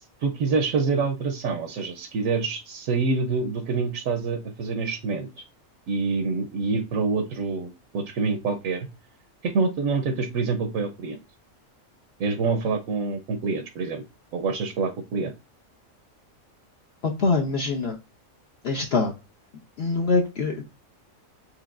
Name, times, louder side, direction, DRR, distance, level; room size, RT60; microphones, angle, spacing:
voice 1, 0.2-5.4 5.9-8.9 9.4-11.2 12.2-14.0 14.3-15.3, right 4 dB, 80° right, 1.1 m, -26 dB
voice 2, 17.0-18.0 18.6-19.1 19.8-20.6, left 3 dB, 55° left, 1.0 m, -24 dB
6.8 x 3.0 x 2.4 m
omnidirectional pair, 1.4 m